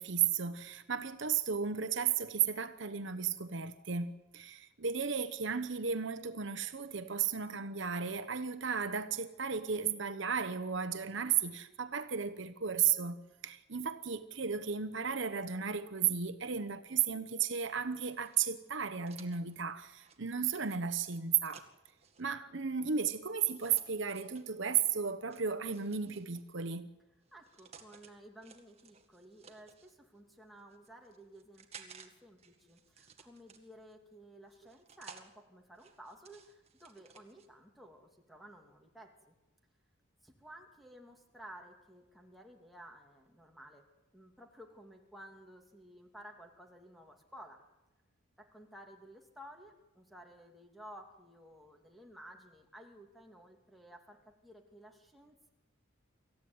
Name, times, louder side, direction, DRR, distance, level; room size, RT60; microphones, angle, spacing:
voice 1, 0.0-21.7 22.2-26.9, right 7 dB, 60° right, 1.0 m, -34 dB
sound 1, 18.1-22.2 23.4-24.5 25.3-26.5 27.2-28.1 28.4-29.9 30.6-32.1 32.4-33.9 34.5-35.3 35.8-37.5, right 6 dB, 30° right, 2.0 m, -57 dB
voice 2, 27.3-39.3 40.2-43.9 44.1-47.6 48.4-55.5, right 1 dB, ahead, 2.6 m, -54 dB
26.0 x 15.0 x 9.5 m
head